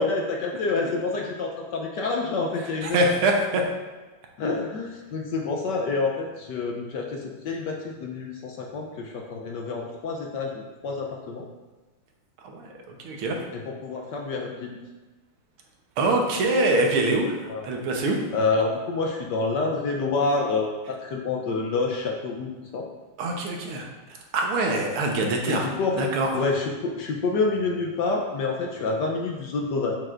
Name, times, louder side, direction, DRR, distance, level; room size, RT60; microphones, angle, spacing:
voice 1, 0.0-3.0 4.4-11.4 13.5-14.8 17.5-17.7 18.3-22.9 25.5-26.0 26.3-30.0, left 3 dB, 70° left, 0 dB, 1.1 m, -28 dB
voice 2, 2.8-3.6 12.4-13.4 16.0-18.2 23.2-23.9 24.3-25.7 26.0-26.3, right 2 dB, 80° right, 1 dB, 1.9 m, -24 dB
7.7 x 6.6 x 2.5 m, 1.2 s
omnidirectional pair, 2.4 m